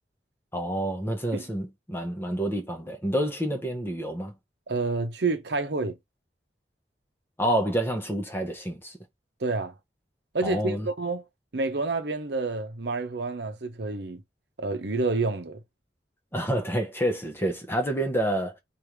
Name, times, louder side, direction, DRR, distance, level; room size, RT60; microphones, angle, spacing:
voice 1, 0.5-4.3 7.4-9.0 10.4-10.9 16.3-18.6, right 1 dB, 15° left, 1.0 m, -28 dB
voice 2, 4.7-6.0 9.4-9.7 10.3-11.2 11.5-14.2 14.6-15.6, right 3 dB, 70° right, 0.8 m, -28 dB
3.4 x 2.6 x 4.6 m
head